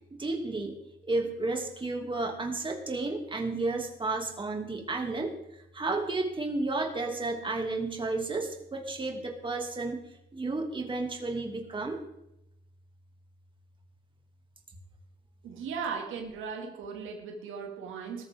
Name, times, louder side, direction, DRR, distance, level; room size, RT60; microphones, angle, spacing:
voice 1, 0.1-0.8 1.1-10.0 10.3-12.0, right 3 dB, 25° right, 3 dB, 2.7 m, -32 dB
voice 2, 15.4-18.3, right 6 dB, 85° right, 2 dB, 2.5 m, -37 dB
18.0 x 14.0 x 3.8 m, 0.84 s
cardioid pair, 90°, 20 cm